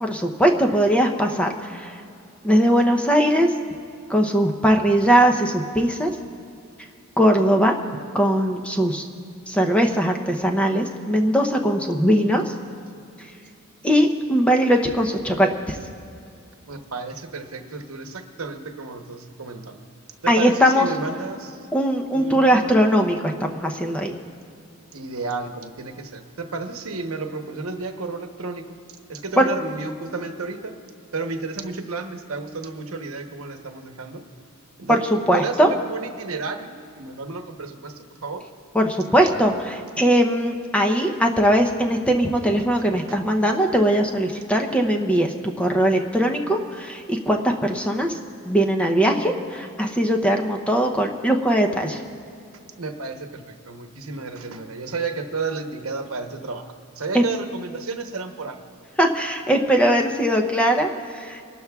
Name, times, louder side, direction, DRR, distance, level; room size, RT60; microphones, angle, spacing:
voice 1, 0.0-2.0 2.4-3.5 4.1-6.1 7.2-7.8 8.1-9.0 9.5-12.5 13.2-13.3 13.8-15.8 20.3-20.9 21.7-24.1 29.4-29.5 34.9-35.7 38.7-48.2 48.4-52.0 57.1-57.2 59.0-61.5, equal, 5° left, 2 dB, 0.6 m, -20 dB
voice 2, 16.7-19.9 20.2-21.6 22.1-22.8 24.9-28.8 29.1-30.7 31.1-34.2 34.8-35.0 35.3-38.4 43.1-43.2 52.8-58.6, right 4 dB, 80° right, 6 dB, 1.0 m, -32 dB
30.0 x 12.5 x 2.3 m, 2.5 s
head